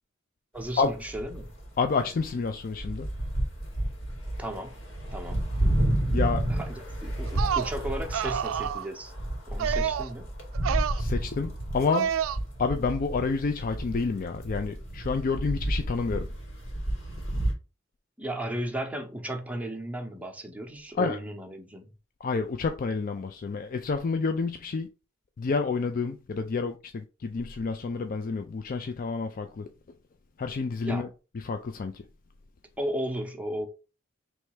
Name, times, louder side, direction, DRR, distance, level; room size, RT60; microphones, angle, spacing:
voice 1, 0.5-1.5 4.4-4.8 5.1-5.5 6.5-9.1 9.5-10.3 18.2-21.9 30.8-31.1 32.8-33.7, right 1 dB, 5° right, 0.7 m, -35 dB
sound 1, 0.6-1.8 2.1-17.5, right 1 dB, 70° left, 2.0 m, -31 dB
voice 2, 1.8-3.1 6.1-6.5 11.0-12.1 12.6-16.3 21.0-21.2 22.2-24.9 25.4-29.7 30.4-31.1 31.3-32.0, left 4 dB, 45° left, 0.4 m, -29 dB
sound 2, 7.3-7.7 8.1-8.9 9.6-10.1 10.5-11.0 11.9-12.4, right 9 dB, 90° right, 0.3 m, -28 dB
3.3 x 3.1 x 4.7 m
head